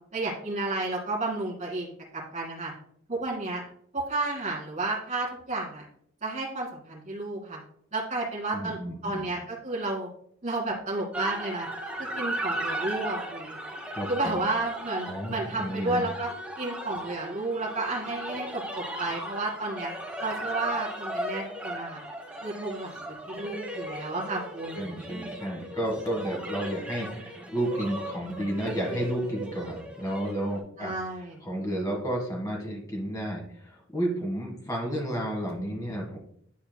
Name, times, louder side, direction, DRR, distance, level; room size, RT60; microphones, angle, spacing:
voice 1, 0.1-2.7 3.1-3.6 3.9-5.9 6.2-7.6 7.9-8.8 9.0-10.1 10.4-11.7 12.0-13.6 14.1-16.3 16.6-19.9 20.2-22.0 22.4-22.9 23.3-24.9 30.8-31.4, right 2 dB, 35° right, -5 dB, 2.3 m, -32 dB
voice 2, 8.5-9.3 13.9-14.4 15.1-16.1 24.7-30.9 31.4-36.2, right 1 dB, 20° left, 0 dB, 1.6 m, -32 dB
sound 1, 11.1-30.6, right 1 dB, 5° right, 1.1 m, -37 dB
10.5 x 4.3 x 2.2 m, 0.67 s
head